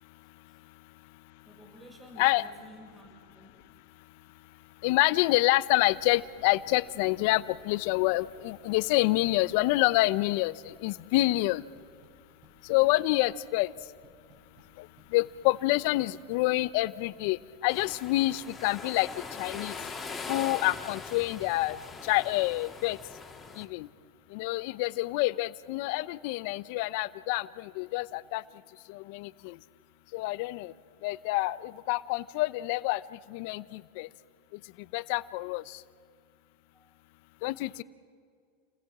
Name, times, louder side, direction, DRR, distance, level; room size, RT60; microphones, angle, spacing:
voice 1, 1.4-3.7 36.7-36.9, left 1 dB, 15° right, 3 dB, 6.2 m, -52 dB
voice 2, 4.8-11.6 12.7-13.7 15.1-17.4 17.6-19.1 19.4-19.7 20.3-21.8 22.0-23.0 23.6-23.9 24.3-28.4 28.9-29.5 30.1-30.7 31.0-33.0 33.3-34.1 34.9-35.6 37.4-37.8, left 19 dB, 65° left, 17 dB, 0.8 m, -27 dB
sound 1, 5.8-22.4, right 3 dB, 50° right, 8.0 m, -59 dB
sound 2, 17.7-23.7, left 4 dB, 20° left, 4.0 m, -41 dB
30.0 x 20.0 x 7.5 m, 2.1 s
hypercardioid pair, 95°, 0 cm